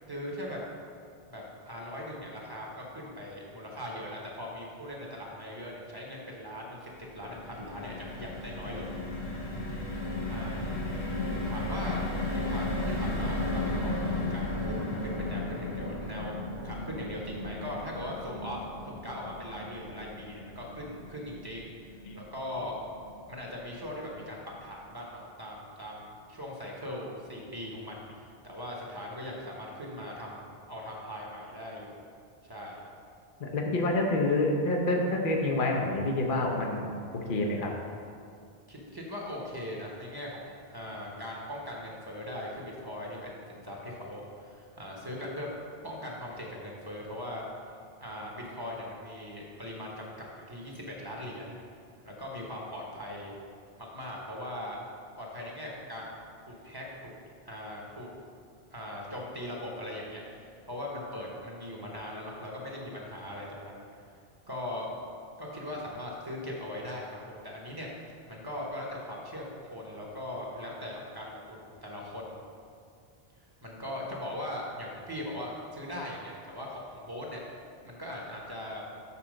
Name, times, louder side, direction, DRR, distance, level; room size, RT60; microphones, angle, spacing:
voice 1, 0.1-0.6 1.3-8.9 10.3-10.7 11.3-18.6 18.8-22.7 23.3-31.9 32.4-32.8 38.7-45.5 45.8-47.4 48.0-51.5 52.0-53.3 53.8-54.8 55.2-56.2 56.5-57.1 57.4-58.1 58.7-63.9 64.5-64.9 65.4-67.2 67.4-67.9 68.3-72.4 73.6-77.4 77.8-78.8, left 1 dB, 25° right, -3 dB, 1.1 m, -40 dB
sound 1, 6.9-23.2 23.6-23.7 24.0-24.2, left 1 dB, 80° left, 2.2 m, -35 dB
voice 2, 33.4-37.7, left 2 dB, 55° left, 0 dB, 1.0 m, -28 dB
7.0 x 4.2 x 6.3 m, 2.3 s
omnidirectional pair, 1.1 m